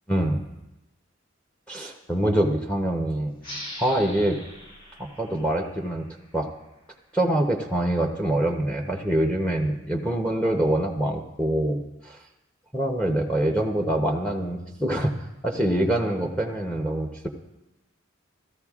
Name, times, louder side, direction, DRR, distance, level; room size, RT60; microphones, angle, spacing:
voice 1, 0.1-0.4 1.7-3.3 3.8-4.4 5.0-6.0 6.3-6.5 7.1-12.2 12.7-15.1 15.4-17.3, right 1 dB, 5° left, 2 dB, 0.7 m, -25 dB
sound 1, 3.4-6.7, left 1 dB, 40° left, 2.2 m, -42 dB
16.5 x 13.5 x 2.4 m, 0.97 s
head